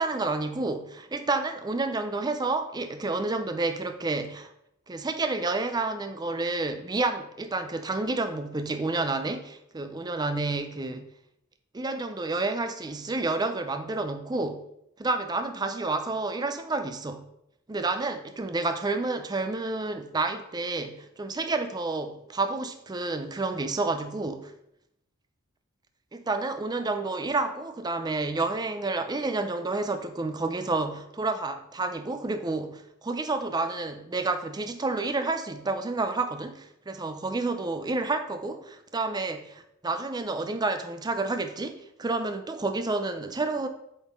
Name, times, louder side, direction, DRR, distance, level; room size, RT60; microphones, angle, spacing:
voice 1, 0.0-4.5 4.9-11.1 11.7-14.6 15.0-17.2 17.7-24.5 26.1-43.7, right 3 dB, 20° right, 8 dB, 0.4 m, -30 dB
8.1 x 3.9 x 3.6 m, 0.78 s
head